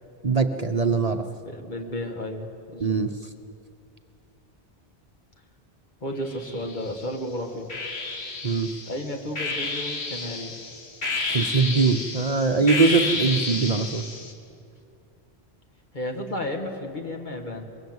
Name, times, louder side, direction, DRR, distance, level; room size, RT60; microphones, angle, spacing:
voice 1, 0.2-1.2 2.8-3.1 8.4-8.7 11.3-14.0, right 4 dB, 40° right, 6 dB, 0.9 m, -22 dB
voice 2, 1.5-3.0 6.0-7.7 8.9-10.5 15.9-17.6, left 1 dB, 45° left, 3 dB, 2.3 m, -33 dB
sound 1, 6.3-7.1 7.7-14.3, left 3 dB, 85° left, 2.2 m, -31 dB
24.5 x 22.0 x 8.0 m, 2.6 s
omnidirectional pair, 1.1 m